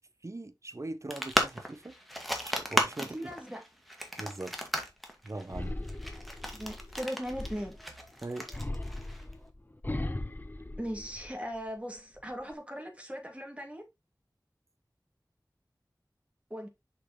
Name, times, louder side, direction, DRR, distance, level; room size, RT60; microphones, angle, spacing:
voice 1, 0.2-1.9 2.4-3.3 4.2-4.6 5.2-5.8 8.2-8.5, right 2 dB, 45° right, 0.9 m, -40 dB
sound 1, 1.1-9.3, equal, ahead, 2.1 m, -35 dB
voice 2, 3.0-3.6 6.5-7.8 10.8-13.8 16.5-16.7, equal, 15° right, 2.5 m, -38 dB
sound 2, 5.5-7.9 8.5-11.6 12.0-12.5, left 1 dB, 25° left, 0.7 m, -38 dB
6.6 x 5.7 x 3.1 m
wide cardioid pair, 45°, 7 cm